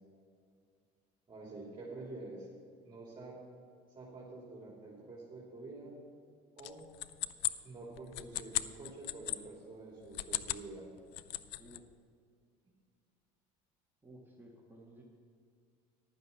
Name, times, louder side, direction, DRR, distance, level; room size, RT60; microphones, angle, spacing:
voice 1, 1.3-2.5 2.8-3.4 3.9-5.9 6.6-6.9 7.6-10.9, right 2 dB, 25° right, -4 dB, 3.2 m, -48 dB
sound 1, 6.6-9.4 10.0-10.7 11.0-11.8, left 17 dB, 75° left, 0.5 m, -37 dB
voice 2, 14.0-15.0, right 1 dB, 10° right, -3 dB, 1.9 m, -55 dB
11.5 x 9.3 x 5.7 m, 2.2 s
supercardioid pair, 90°, 19 cm